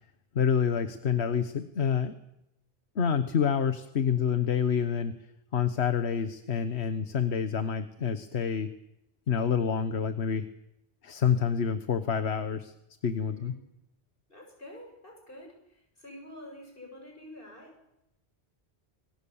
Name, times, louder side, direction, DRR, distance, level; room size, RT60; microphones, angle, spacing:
voice 1, 0.3-2.1 3.0-5.1 5.5-8.7 9.3-10.5 11.0-12.7 13.0-13.5, left 7 dB, 80° left, 10 dB, 1.4 m, -27 dB
voice 2, 14.3-17.8, left 1 dB, 55° left, 2 dB, 7.8 m, -48 dB
29.5 x 23.5 x 7.2 m, 0.88 s
omnidirectional pair, 1.1 m